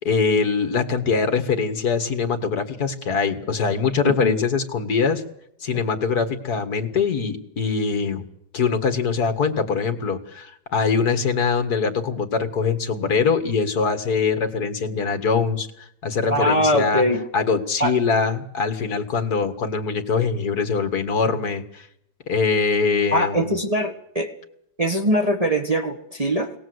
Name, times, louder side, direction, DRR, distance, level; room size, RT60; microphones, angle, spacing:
voice 1, 0.0-5.2 5.6-8.2 8.5-15.7 16.0-17.0 17.3-21.9 22.3-23.5, left 5 dB, 65° left, 7 dB, 2.3 m, -23 dB
voice 2, 16.3-17.2 17.8-17.9 23.1-24.3 24.8-26.5, equal, 25° right, 2 dB, 1.3 m, -22 dB
25.5 x 18.5 x 7.9 m, 0.77 s
omnidirectional pair, 1.8 m